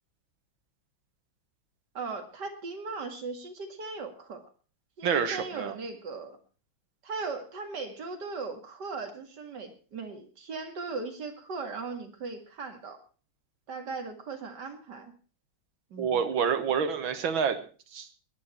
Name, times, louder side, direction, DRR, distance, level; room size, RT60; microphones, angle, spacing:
voice 1, 1.9-4.4 5.0-6.4 7.0-13.0 13.7-15.1 15.9-16.2, right 4 dB, 60° right, 5 dB, 2.7 m, -38 dB
voice 2, 5.0-5.8 16.0-17.6 17.9-18.1, right 7 dB, 85° right, 10 dB, 2.2 m, -28 dB
21.0 x 10.0 x 4.4 m, 0.38 s
omnidirectional pair, 2.1 m